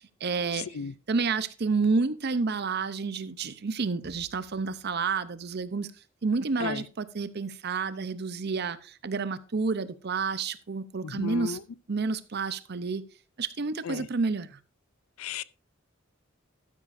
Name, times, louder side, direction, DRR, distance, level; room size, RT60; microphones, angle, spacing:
voice 1, 0.0-0.7 1.1-5.9 6.2-11.6 11.9-13.1 13.4-14.6, right 4 dB, 50° right, 0.6 m, -30 dB
voice 2, 0.6-0.9 6.6-6.8 11.0-11.6 13.8-14.1 15.2-15.4, left 7 dB, 90° left, 0.5 m, -34 dB
12.5 x 10.0 x 2.6 m
head